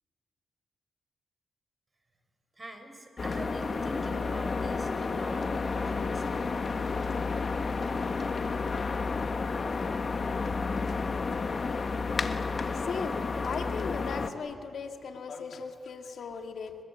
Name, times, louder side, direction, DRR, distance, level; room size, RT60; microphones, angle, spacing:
voice 1, 2.5-5.5 5.8-6.4, right 1 dB, 30° right, 7 dB, 5.2 m, -44 dB
sound 1, 3.2-14.3, left 4 dB, 50° left, 1.6 m, -31 dB
voice 2, 12.7-16.8, left 5 dB, 75° left, 5 dB, 2.0 m, -38 dB
29.5 x 22.5 x 8.5 m, 2.4 s
cardioid pair, 65°, 0 cm